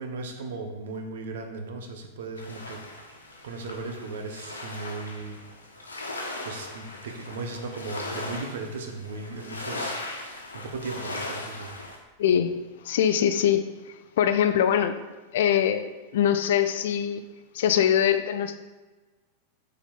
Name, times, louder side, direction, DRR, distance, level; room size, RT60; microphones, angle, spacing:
voice 1, 0.0-5.4 6.4-11.8, right 3 dB, 60° right, 1.1 m, -37 dB
sound 1, 2.4-12.0, left 2 dB, 75° left, 1.2 m, -38 dB
voice 2, 12.2-12.6 12.8-13.6 14.2-14.9 15.3-17.2 17.5-18.6, left 9 dB, 55° left, 0.5 m, -23 dB
6.9 x 5.3 x 4.4 m
figure-of-eight pair, 90°, 0 cm